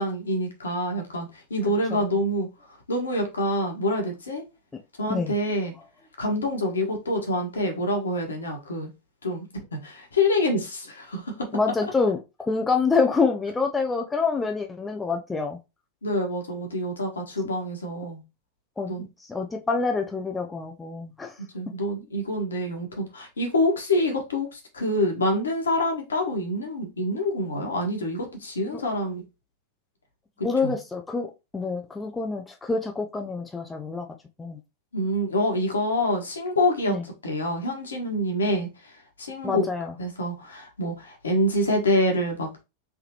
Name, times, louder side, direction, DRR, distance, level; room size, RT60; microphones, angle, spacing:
voice 1, 0.0-2.5 2.9-4.4 5.0-5.7 6.2-8.9 9.2-11.5 16.0-18.2 18.9-19.0 21.5-29.2 30.6-30.8 34.9-38.7 39.2-39.7 40.0-42.6, left 1 dB, 70° left, 1.3 m, -26 dB
voice 2, 11.5-15.6 18.8-21.3 28.7-28.8 30.4-34.1 34.4-34.6 36.9-37.0 39.4-39.9, left 4 dB, 10° left, 0.6 m, -27 dB
3.7 x 3.4 x 3.0 m
figure-of-eight pair, 90°, 0 cm